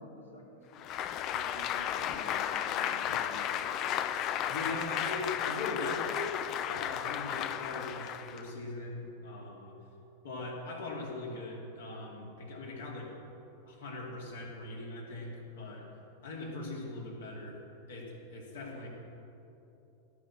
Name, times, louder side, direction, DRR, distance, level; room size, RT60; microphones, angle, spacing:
voice 1, 0.0-3.9, left 1 dB, 80° left, 0 dB, 2.2 m, -51 dB
Applause, 0.8-8.5, left 10 dB, 35° left, 0.5 m, -34 dB
voice 2, 4.5-6.4 6.7-9.8 10.2-13.1 13.7-15.9 16.2-17.6 17.9-18.9, left 2 dB, 60° left, -2 dB, 2.8 m, -40 dB
17.0 x 6.0 x 8.5 m, 2.9 s
figure-of-eight pair, 90°, 0 cm